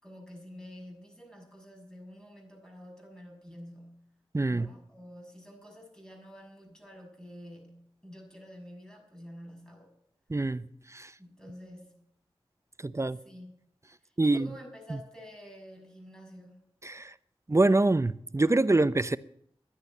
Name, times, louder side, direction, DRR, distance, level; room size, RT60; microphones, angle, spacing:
voice 1, 0.0-4.0 4.5-9.9 11.2-12.0 13.2-13.5 14.0-16.6, equal, 5° left, 6.5 m, -49 dB
voice 2, 4.3-4.7 10.3-10.6 10.9-11.1 12.8-13.2 14.2-14.5 16.8-17.1 17.5-19.2, right 2 dB, 30° right, 0.6 m, -25 dB
11.5 x 10.5 x 9.5 m
cardioid pair, 45°, 10 cm